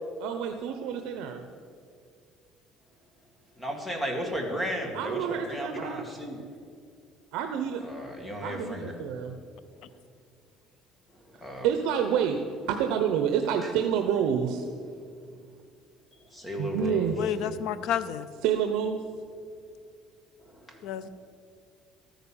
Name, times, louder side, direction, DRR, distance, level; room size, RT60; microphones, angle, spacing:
voice 1, 0.2-1.4 4.9-6.1 7.3-7.8 8.4-9.3 11.6-12.4 12.7-14.7 16.6-17.2 18.4-19.0, right 8 dB, 75° right, 6 dB, 0.9 m, -28 dB
voice 2, 3.6-6.4 7.8-8.9 11.4-11.7 16.3-17.1 17.4-17.5 20.7-20.8, equal, 5° left, 2 dB, 1.8 m, -34 dB
voice 3, 17.2-18.3 20.8-21.1, left 9 dB, 60° left, 14 dB, 0.6 m, -30 dB
13.5 x 9.3 x 7.1 m, 2.2 s
cardioid pair, 165°, 0 cm